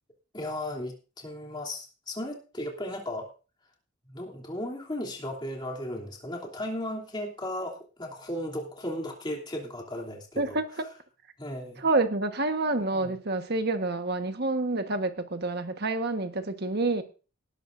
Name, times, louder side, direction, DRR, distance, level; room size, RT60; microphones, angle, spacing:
voice 1, 0.3-3.3 4.1-10.6 11.4-11.9 12.9-13.2, left 1 dB, 20° left, 0 dB, 3.0 m, -36 dB
voice 2, 10.4-10.9 11.8-17.0, right 2 dB, 50° right, 7 dB, 1.4 m, -28 dB
19.0 x 12.5 x 2.6 m, 0.35 s
head